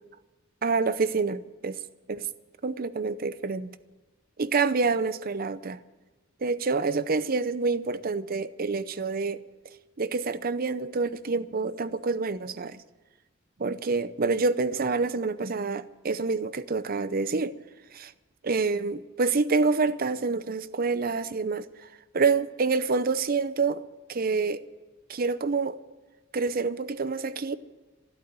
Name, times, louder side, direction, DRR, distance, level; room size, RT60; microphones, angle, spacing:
voice 1, 0.6-1.8 2.1-2.3 2.6-3.8 4.4-5.8 6.4-9.4 10.0-12.8 13.6-17.6 17.9-18.1 18.4-21.7 22.1-24.6 25.1-25.8 26.3-27.6, right 4 dB, 45° right, 0.6 m, -27 dB
13.0 x 11.5 x 9.2 m
head